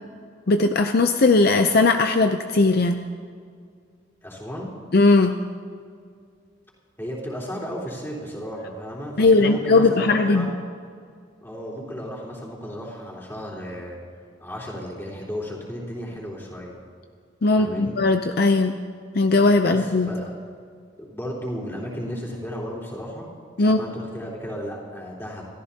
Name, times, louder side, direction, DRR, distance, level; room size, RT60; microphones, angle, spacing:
voice 1, 0.5-3.0 4.9-5.3 9.2-10.5 17.4-18.8 19.1-20.1 23.6-23.8, left 3 dB, 55° left, 7 dB, 0.6 m, -18 dB
voice 2, 4.2-4.7 7.0-10.5 11.4-14.0 14.4-16.8 17.6-18.0 19.6-20.2 21.0-23.3 23.6-25.4, equal, 15° left, -5 dB, 3.6 m, -34 dB
27.5 x 14.0 x 2.9 m, 2.1 s
head